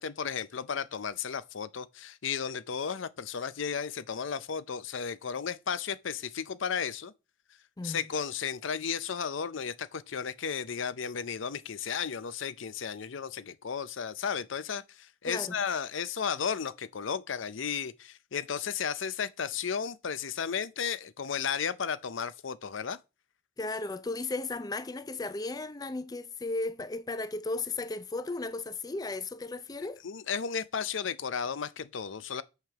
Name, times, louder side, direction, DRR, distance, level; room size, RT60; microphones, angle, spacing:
voice 1, 0.0-7.1 7.8-23.0 30.0-32.4, left 7 dB, 70° left, 0.6 m, -34 dB
voice 2, 23.6-30.0, left 3 dB, 20° left, 0.4 m, -35 dB
6.6 x 6.4 x 5.9 m
head